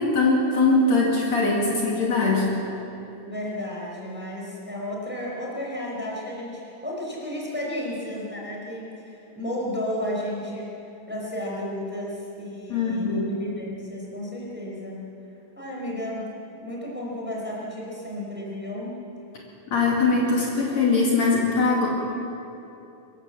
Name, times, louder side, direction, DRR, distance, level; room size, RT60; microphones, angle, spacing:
voice 1, 0.0-2.5 12.7-13.3 19.7-21.9, left 3 dB, 55° left, -3 dB, 3.5 m, -21 dB
voice 2, 3.2-10.7 11.1-15.1 15.5-16.3 16.6-19.0, left 1 dB, 5° right, -3 dB, 4.4 m, -33 dB
24.5 x 15.5 x 7.7 m, 2.8 s
omnidirectional pair, 3.9 m